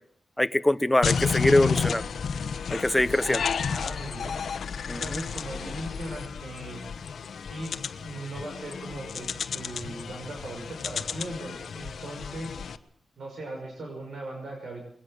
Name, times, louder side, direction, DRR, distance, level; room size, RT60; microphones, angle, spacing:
voice 1, 0.4-2.0 2.7-3.4 4.9-5.2, left 1 dB, 10° left, 13 dB, 1.0 m, -23 dB
sound 1, 1.0-12.8, left 6 dB, 75° left, 1.1 m, -32 dB
voice 2, 3.7-4.4 4.9-6.8 7.5-12.6 13.2-14.8, right 1 dB, 65° right, 1 dB, 5.9 m, -39 dB
21.5 x 19.0 x 6.6 m, 0.62 s
wide cardioid pair, 95°, 0 cm